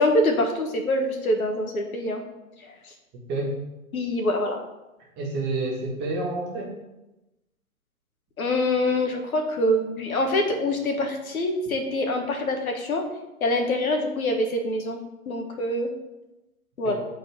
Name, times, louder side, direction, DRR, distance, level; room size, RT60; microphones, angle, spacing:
voice 1, 0.0-2.2 2.6-2.9 3.9-4.6 8.4-13.0 13.4-15.0 15.3-15.9 16.8-17.0, left 1 dB, 75° left, 4 dB, 1.4 m, -25 dB
voice 2, 5.2-6.7 16.8-17.0, right 2 dB, 25° right, -2 dB, 1.7 m, -28 dB
9.2 x 4.1 x 3.5 m, 0.99 s
hypercardioid pair, 130°, 43 cm